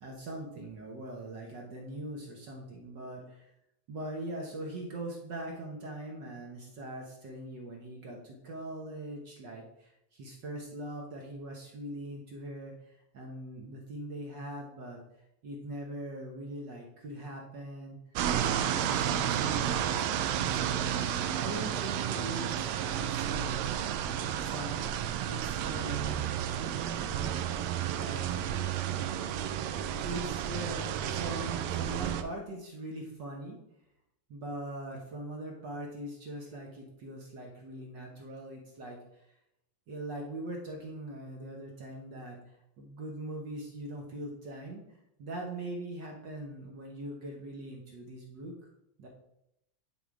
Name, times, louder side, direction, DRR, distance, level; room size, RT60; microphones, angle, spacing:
voice 1, 0.0-3.5 3.9-15.0 15.4-18.0 18.4-23.9 24.4-24.8 25.3-26.3 27.0-27.5 27.9-28.4 29.7-33.6 34.3-39.0 39.9-44.8 45.2-48.5 49.0-49.1, right 1 dB, 55° right, 0 dB, 1.2 m, -41 dB
sound 1, 18.2-32.2, right 10 dB, 75° right, 1.6 m, -32 dB
10.5 x 3.9 x 4.7 m, 0.82 s
omnidirectional pair, 3.3 m